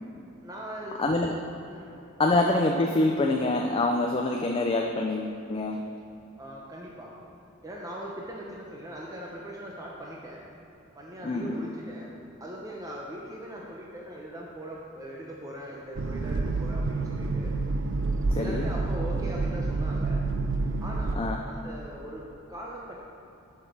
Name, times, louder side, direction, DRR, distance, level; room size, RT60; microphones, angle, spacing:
voice 1, 0.4-1.0 1.7-2.0 6.4-7.2 7.6-10.4 11.0-12.1 12.4-17.6 18.3-20.2 20.8-23.0, equal, 15° right, -3 dB, 0.7 m, -40 dB
voice 2, 1.0-1.3 2.2-5.8 11.2-11.7 18.4-18.7 21.2-21.4, left 2 dB, 25° left, 1 dB, 0.4 m, -25 dB
sound 1, 16.0-21.2, right 3 dB, 60° right, 0.5 m, -28 dB
8.0 x 5.2 x 5.9 m, 2.9 s
head